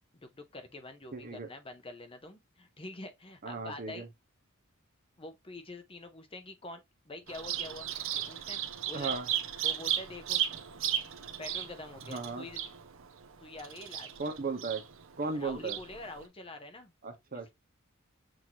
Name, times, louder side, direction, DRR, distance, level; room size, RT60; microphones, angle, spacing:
voice 1, 0.2-4.0 5.2-8.6 8.9-9.1 9.6-10.4 11.4-12.7 13.4-14.1 15.3-16.9 17.3-17.5, left 2 dB, 25° left, 0.8 m, -46 dB
voice 2, 1.1-1.5 3.4-4.1 8.9-9.3 12.1-12.5 14.2-14.8 15.2-15.8 17.0-17.5, right 4 dB, 45° right, 1.1 m, -36 dB
Bird vocalization bird call bird song, 7.3-16.3, right 10 dB, 65° right, 0.6 m, -36 dB
6.3 x 2.9 x 3.0 m
head